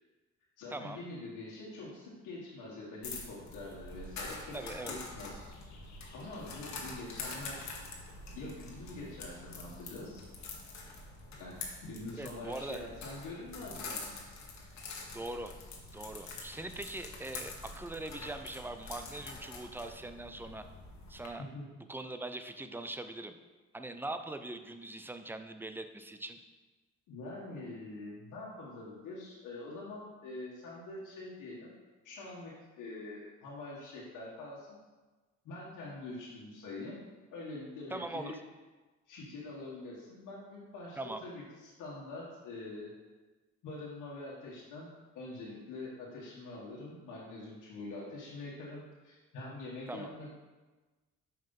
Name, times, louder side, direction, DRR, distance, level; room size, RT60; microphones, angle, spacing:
voice 1, 0.6-5.4 6.1-7.8 8.3-10.3 11.4-14.2 21.4-21.7 27.1-31.7 32.0-34.8 35.4-37.0 37.3-38.4 39.1-42.9 43.6-50.3, left 2 dB, 90° left, -6 dB, 1.6 m, -45 dB
sound 1, 3.0-21.3, left 3 dB, 65° left, 1.5 m, -45 dB
voice 2, 4.5-5.0 12.2-12.8 15.1-15.5 15.9-20.7 21.1-21.4 21.9-23.3 23.7-26.4 37.9-38.4 41.0-41.2 49.9-50.1, right 2 dB, 5° right, 8 dB, 0.5 m, -41 dB
5.6 x 5.5 x 5.3 m, 1.2 s
cardioid pair, 90°, 30 cm